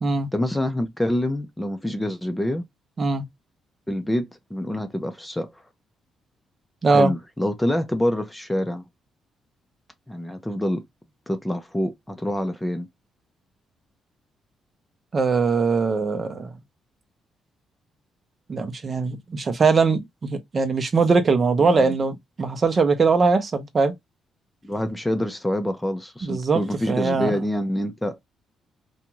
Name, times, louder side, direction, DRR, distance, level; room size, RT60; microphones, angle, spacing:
voice 1, 0.3-2.6 3.9-5.6 6.9-8.8 10.1-10.8 11.3-12.9 21.6-21.9 24.6-28.2, left 1 dB, 10° left, 0.5 m, -26 dB
voice 2, 6.8-7.1 15.1-16.5 18.5-23.9 26.2-27.4, right 4 dB, 40° right, 0.7 m, -21 dB
2.5 x 2.3 x 2.9 m
cardioid pair, 90°, 0 cm